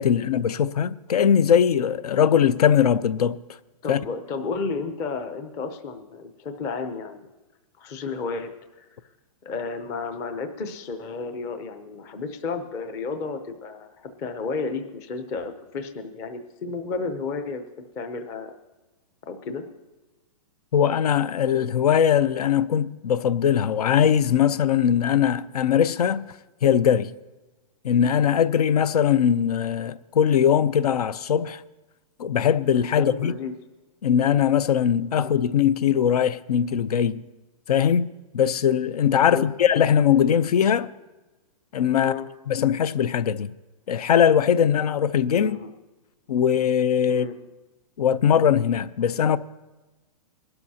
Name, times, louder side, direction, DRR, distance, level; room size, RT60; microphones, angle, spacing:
voice 1, 0.0-3.4 3.9-4.0 20.7-26.2 26.6-27.1 27.8-31.6 32.2-33.4 34.0-37.2 37.7-38.1 38.3-40.9 41.7-42.1 42.5-43.5 43.9-45.6 46.3-47.3 48.0-49.4, left 8 dB, 70° left, 0.6 m, -20 dB
voice 2, 3.8-7.3 7.8-8.9 9.4-17.6 17.9-18.5 19.2-19.6 32.9-33.5 35.1-35.3 39.2-39.5 42.0-42.3 45.4-45.7 47.1-47.3, left 4 dB, 15° left, 0.6 m, -32 dB
21.5 x 12.5 x 2.8 m
hypercardioid pair, 175°, 20 cm